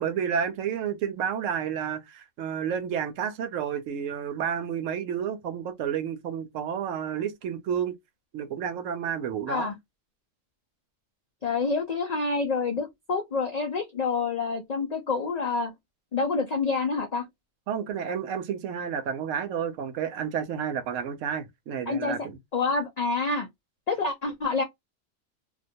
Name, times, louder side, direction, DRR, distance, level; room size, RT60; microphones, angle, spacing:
voice 1, 0.0-8.0 8.3-9.8 17.7-22.4, right 8 dB, 75° right, 0.9 m, -30 dB
voice 2, 11.4-15.7 16.1-17.3 21.9-22.2 22.5-23.5 23.9-24.6, left 4 dB, 80° left, 0.3 m, -27 dB
2.4 x 2.2 x 2.6 m
omnidirectional pair, 1.3 m